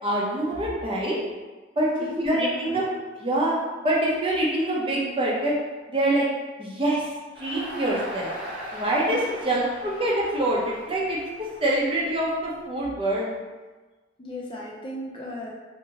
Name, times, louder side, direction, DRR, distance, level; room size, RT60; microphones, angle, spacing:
voice 1, 0.0-1.2 1.8-1.9 2.2-2.8 3.2-3.6 3.8-5.5 5.9-6.2 6.6-7.1 7.4-8.3 8.7-9.2 9.4-11.2 11.6-13.3, right 1 dB, 30° right, -5 dB, 0.7 m, -25 dB
voice 2, 2.0-2.8 9.1-9.2 14.2-15.5, left 1 dB, 30° left, -3 dB, 0.5 m, -34 dB
Crowd, 7.3-12.5, equal, 65° right, 1.3 m, -39 dB
2.8 x 2.8 x 3.7 m, 1.3 s
head